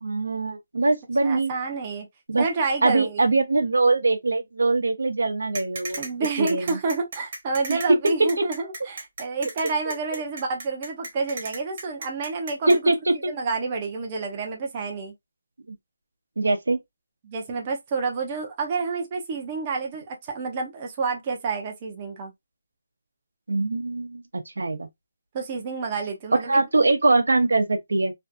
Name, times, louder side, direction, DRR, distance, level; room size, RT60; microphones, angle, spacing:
voice 1, 0.0-1.5 2.3-2.4 2.8-6.0 6.4-6.8 7.7-7.8 12.7-13.1 15.7-15.8 16.4-16.8 23.5-24.2 24.6-24.9 26.5-28.1, right 3 dB, 85° right, 0.7 m, -22 dB
voice 2, 1.2-2.1 2.4-3.3 6.0-12.9 13.3-15.1 17.2-22.3 25.3-26.6, right 4 dB, 20° right, 0.5 m, -29 dB
sound 1, 5.5-12.8, right 3 dB, 40° right, 0.9 m, -35 dB
2.6 x 2.3 x 2.5 m
hypercardioid pair, 170°, 0 cm